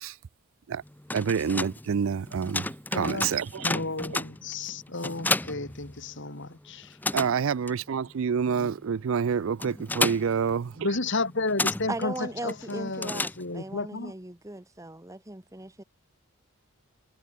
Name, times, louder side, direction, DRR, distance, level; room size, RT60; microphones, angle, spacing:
sound 1, 0.9-6.5 6.7-13.8, left 2 dB, 10° left, 0.6 m, -33 dB
voice 1, 1.1-2.7 2.9-3.7 4.1-4.2 7.1-10.9, right 6 dB, 60° right, 0.4 m, -27 dB
voice 2, 2.9-3.4 3.6-7.0 8.5-8.7 10.8-14.1, left 3 dB, 55° left, 2.4 m, -32 dB
voice 3, 11.9-15.8, right 2 dB, 15° right, 1.1 m, -38 dB
head